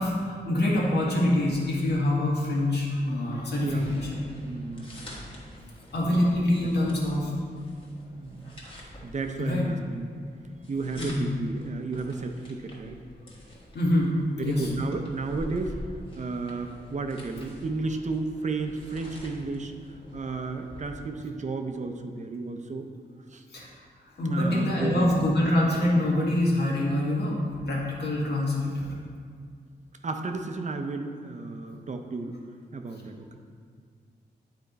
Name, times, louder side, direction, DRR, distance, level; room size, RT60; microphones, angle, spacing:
voice 1, 0.0-4.1 5.9-7.3 9.4-9.7 11.0-11.3 13.7-14.1 14.4-14.7 23.5-23.7 24.2-28.9, left 1 dB, 70° left, -4 dB, 1.7 m, -25 dB
sound 1, 3.2-21.1, left 1 dB, 30° left, 1.4 m, -46 dB
voice 2, 4.3-5.4 6.6-6.7 8.1-8.6 9.0-10.1 10.7-13.0 14.4-15.8 16.2-19.7 20.1-22.9 23.3-23.4 24.2-25.3 28.2-28.4 28.8-28.9 30.0-32.4 32.7-33.3, right 3 dB, 40° right, 5 dB, 0.6 m, -33 dB
9.3 x 4.4 x 4.0 m, 2.1 s
wide cardioid pair, 115°, 18 cm